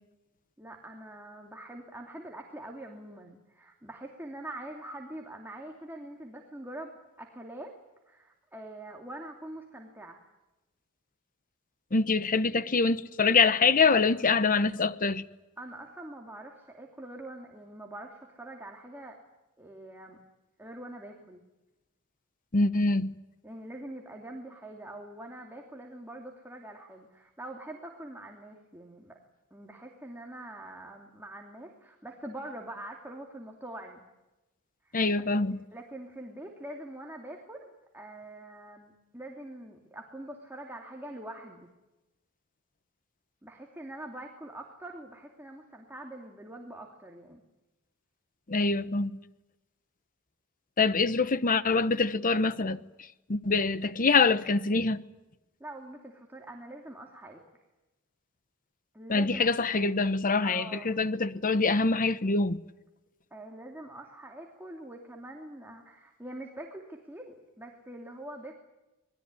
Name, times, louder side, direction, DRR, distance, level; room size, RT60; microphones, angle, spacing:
voice 1, 0.6-7.8 8.1-10.3 15.6-19.2 19.6-20.2 20.6-21.4 23.4-29.2 29.5-34.0 34.8-35.0 35.3-35.4 35.7-41.7 43.4-47.4 55.6-57.4 58.9-59.5 60.4-61.0 63.3-68.5, right 1 dB, 10° right, 2.8 m, -44 dB
voice 2, 11.9-15.3 22.5-23.1 34.9-35.6 48.5-49.2 50.8-52.8 53.3-55.0 59.1-62.6, left 4 dB, 40° left, 1.0 m, -25 dB
26.0 x 20.5 x 9.8 m
head